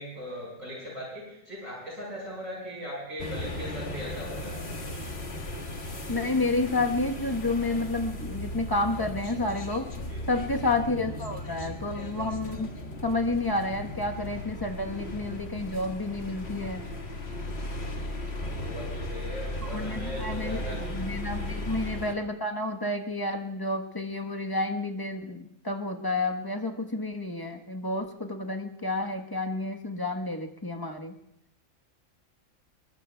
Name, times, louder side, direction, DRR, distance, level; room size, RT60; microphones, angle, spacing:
voice 1, 0.0-4.6 10.1-10.5 18.4-20.8 21.5-21.7, equal, 80° right, -3 dB, 6.0 m, -39 dB
sound 1, 3.2-22.1, left 1 dB, 50° left, 1.9 m, -36 dB
voice 2, 6.1-9.9 10.3-12.7 13.0-16.8 19.7-31.1, left 2 dB, 15° left, 4 dB, 1.2 m, -30 dB
26.0 x 22.0 x 2.3 m, 0.78 s
omnidirectional pair, 1.4 m